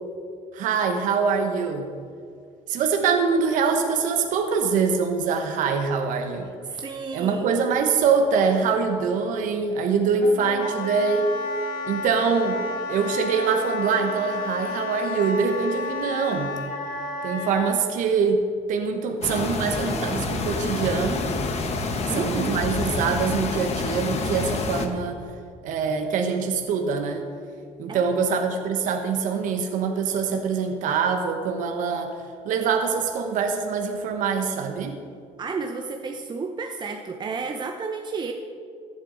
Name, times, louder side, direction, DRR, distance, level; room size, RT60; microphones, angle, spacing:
voice 1, 0.5-1.9 2.7-6.5 7.1-11.3 11.9-12.6 12.9-16.5 17.2-18.4 18.7-21.3 22.1-25.2 25.6-27.2 27.8-32.1 32.4-35.0, right 5 dB, 70° right, 4 dB, 1.0 m, -24 dB
voice 2, 6.6-7.5 22.1-22.6 27.9-28.2 35.4-38.3, right 4 dB, 35° right, 3 dB, 0.8 m, -31 dB
Wind instrument woodwind instrument, 10.2-17.8, left 2 dB, 80° left, 1.3 m, -31 dB
sound 1, 19.2-24.9, left 3 dB, 50° left, 1.3 m, -27 dB
14.5 x 8.0 x 3.9 m, 2.3 s
cardioid pair, 90°, 14 cm